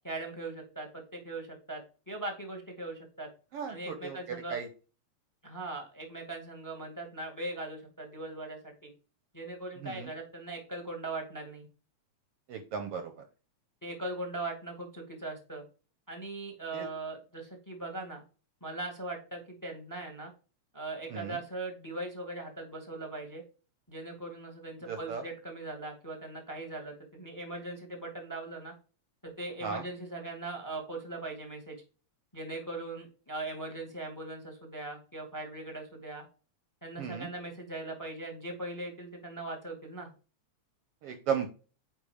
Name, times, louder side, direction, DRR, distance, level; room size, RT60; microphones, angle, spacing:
voice 1, 0.0-1.8 2.1-3.3 3.7-4.6 5.4-8.9 9.3-11.6 13.8-15.6 16.1-18.2 18.6-20.3 20.7-23.4 23.9-28.7 29.2-31.7 32.3-36.2 36.8-40.1, right 2 dB, 10° left, 3 dB, 1.5 m, -40 dB
voice 2, 3.5-4.7 9.8-10.1 12.5-13.1 16.7-16.9 21.1-21.4 24.9-25.2 29.6-29.8 37.0-37.3 41.0-41.5, right 7 dB, 65° right, 6 dB, 1.6 m, -35 dB
9.4 x 3.6 x 4.9 m, 0.35 s
omnidirectional pair, 3.3 m